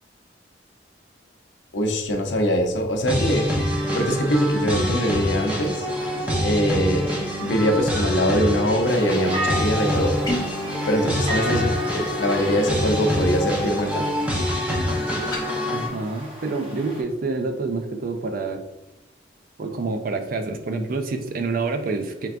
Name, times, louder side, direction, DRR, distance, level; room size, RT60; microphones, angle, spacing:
voice 1, 1.7-3.5 3.9-5.9 6.4-7.1 7.4-10.2 10.9-11.7 12.1-14.0, equal, 85° left, 3 dB, 0.6 m, -22 dB
sound 1, 3.1-15.9, equal, 10° right, 0.8 m, -25 dB
sound 2, 8.9-17.0, left 1 dB, 30° right, 1.0 m, -33 dB
sound 3, 10.2-10.6 15.2-15.5, left 2 dB, 20° left, 0.9 m, -29 dB
voice 2, 15.7-18.6 19.6-22.3, right 3 dB, 50° right, 7 dB, 0.4 m, -27 dB
4.5 x 3.4 x 2.5 m, 0.93 s
head